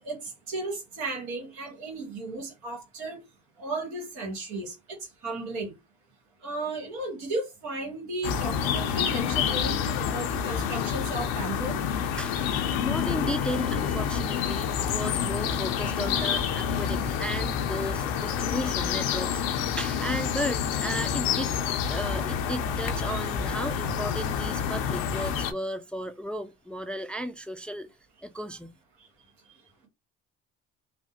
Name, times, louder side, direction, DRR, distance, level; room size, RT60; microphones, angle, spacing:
voice 1, 0.0-3.2 3.6-5.7 6.4-11.8, right 2 dB, 80° right, 1.5 m, -35 dB
sound 1, 8.2-25.5, left 8 dB, 90° left, 0.5 m, -28 dB
voice 2, 12.2-21.6 21.9-27.9 28.2-28.7, equal, 5° left, 0.3 m, -35 dB
3.3 x 2.1 x 2.8 m
supercardioid pair, 65°, 29 cm